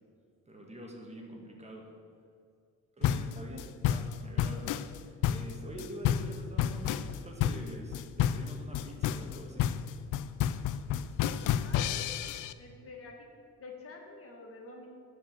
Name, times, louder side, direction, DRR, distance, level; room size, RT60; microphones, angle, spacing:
voice 1, 0.5-1.9 3.0-4.7 5.2-9.7, right 1 dB, 20° right, 0 dB, 1.9 m, -46 dB
sound 1, 3.0-12.5, left 10 dB, 80° left, 0.5 m, -30 dB
voice 2, 11.6-12.2 12.6-13.1 13.6-14.9, left 3 dB, 50° left, 1 dB, 1.8 m, -48 dB
10.5 x 5.2 x 7.3 m, 2.3 s
cardioid pair, 90°, 30 cm